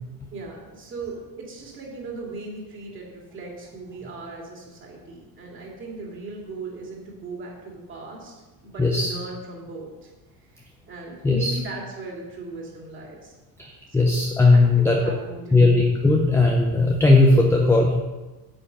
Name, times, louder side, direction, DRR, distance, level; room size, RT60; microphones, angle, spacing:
voice 1, 0.3-10.1 10.4-13.4 13.9-14.2 14.5-15.7, right 3 dB, 30° right, -1 dB, 2.6 m, -38 dB
voice 2, 8.8-9.1 11.2-11.6 13.6-15.0 15.5-18.0, left 2 dB, 5° left, 0 dB, 0.6 m, -18 dB
8.8 x 7.3 x 5.5 m, 1.1 s
cardioid pair, 160°, 41 cm